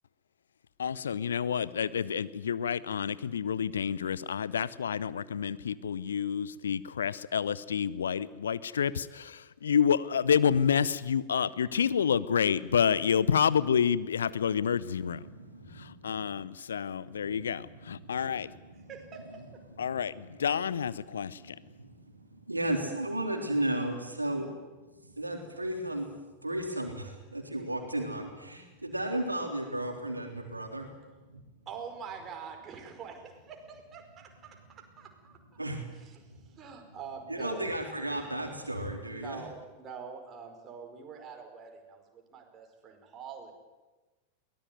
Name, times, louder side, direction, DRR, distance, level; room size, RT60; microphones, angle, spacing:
voice 1, 0.8-15.2 15.7-18.4 19.8-21.5, left 7 dB, 65° left, 19 dB, 0.7 m, -29 dB
voice 2, 15.2-16.4 17.1-18.1 19.8-20.3 21.2-24.6 24.9-26.1 26.4-30.9 31.3-31.4 35.6-36.0 36.3-36.4 37.3-39.4, right 1 dB, 85° right, 3 dB, 3.6 m, -35 dB
voice 3, 31.6-35.4 36.0-37.6 39.0-43.5, right 6 dB, 30° right, 3 dB, 5.0 m, -45 dB
22.5 x 18.5 x 9.4 m, 1.2 s
figure-of-eight pair, 90°, 0 cm